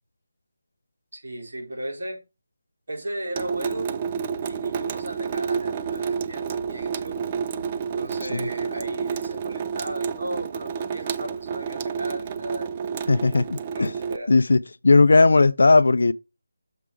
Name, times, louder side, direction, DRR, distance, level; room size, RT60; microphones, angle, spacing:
voice 1, 1.1-2.2 2.9-3.9 4.4-7.3 7.9-12.8 13.7-14.3, right 1 dB, 65° right, 3.8 m, -36 dB
Water tap faucet / Sink (filling or washing) / Drip, 3.3-14.2, right 6 dB, 20° right, 0.4 m, -30 dB
voice 2, 13.1-13.9 14.3-16.1, left 3 dB, 65° left, 0.4 m, -17 dB
6.8 x 5.0 x 4.7 m
figure-of-eight pair, 170°, 0 cm